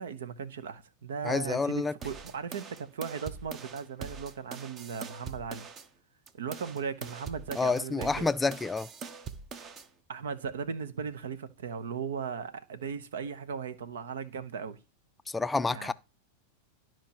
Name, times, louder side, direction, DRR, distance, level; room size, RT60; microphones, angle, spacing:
voice 1, 0.0-5.7 6.3-8.3 10.1-14.8 15.7-15.9, right 6 dB, 80° right, 0.9 m, -37 dB
voice 2, 1.2-1.9 7.6-8.9 15.3-15.9, left 3 dB, 10° left, 0.3 m, -28 dB
sound 1, 2.0-5.9 6.3-9.9, right 5 dB, 30° right, 0.8 m, -43 dB
13.0 x 4.5 x 3.0 m
hypercardioid pair, 110°, 0 cm